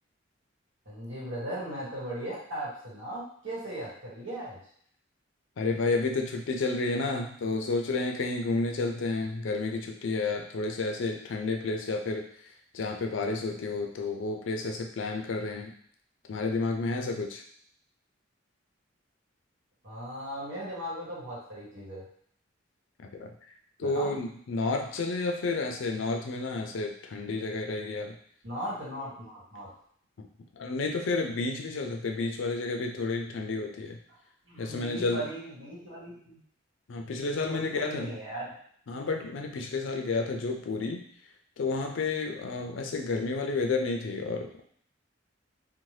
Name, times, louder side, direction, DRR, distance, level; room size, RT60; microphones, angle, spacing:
voice 1, 0.8-4.6 19.8-22.0 23.8-24.2 28.4-29.7 34.5-36.4 37.5-38.6, right 1 dB, 80° right, -6 dB, 1.2 m, -38 dB
voice 2, 5.6-12.3 12.7-15.7 16.3-17.4 23.0-23.3 23.8-28.2 30.2-30.3 30.5-34.0 34.6-35.2 36.9-38.1 38.9-41.0 41.6-44.6, left 3 dB, 75° left, 3 dB, 0.4 m, -31 dB
2.7 x 2.1 x 3.1 m, 0.62 s
head